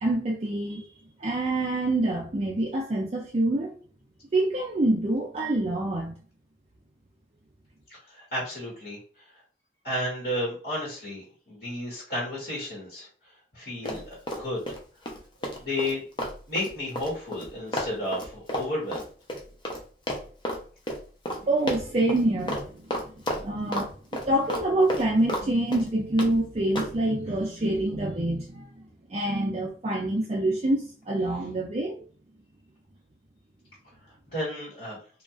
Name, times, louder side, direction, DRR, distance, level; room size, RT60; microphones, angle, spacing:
voice 1, 0.0-0.9 1.2-3.7 4.3-6.2 21.4-23.9 24.3-28.7 29.1-32.0, right 1 dB, 35° right, -2 dB, 0.4 m, -26 dB
voice 2, 7.9-9.0 9.8-13.1 13.5-14.8 15.4-16.0 16.5-19.1 34.3-35.0, left 1 dB, 65° left, -6 dB, 1.3 m, -32 dB
Run, 13.8-14.8 15.1-19.8 20.1-20.6 20.9-21.0 21.3-21.4 21.7-22.2 22.5-22.6 22.9-23.9 24.1-25.5 25.7-26.3 26.8-26.9, equal, 25° left, 0.6 m, -31 dB
2.8 x 2.3 x 2.4 m, 0.42 s
head